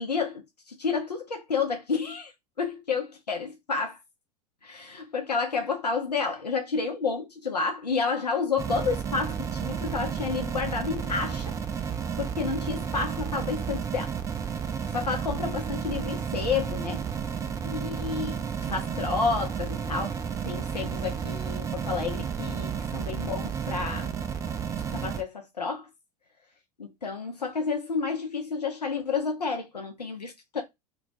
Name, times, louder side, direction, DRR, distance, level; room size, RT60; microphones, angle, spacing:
voice 1, 0.0-2.3 2.6-4.0 4.6-11.5 12.2-14.1 14.7-17.0 17.6-20.2 20.4-24.1 24.9-25.9 26.8-30.6, left 5 dB, 85° left, 0.5 m, -30 dB
sound 1, 8.6-25.2, right 7 dB, 15° right, 0.3 m, -32 dB
2.2 x 2.2 x 2.6 m
figure-of-eight pair, 85°, 20 cm